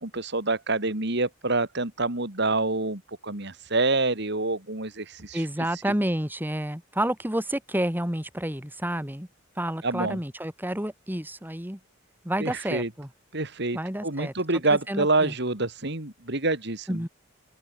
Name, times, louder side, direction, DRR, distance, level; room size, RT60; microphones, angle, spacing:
voice 1, 0.0-5.4 9.8-10.2 12.4-12.9 13.3-17.0, right 2 dB, 60° right, 3.4 m, -27 dB
voice 2, 5.3-9.3 9.6-11.8 12.2-13.1 13.7-14.3 14.9-15.3 16.9-17.1, right 1 dB, 10° right, 3.4 m, -29 dB
open air
head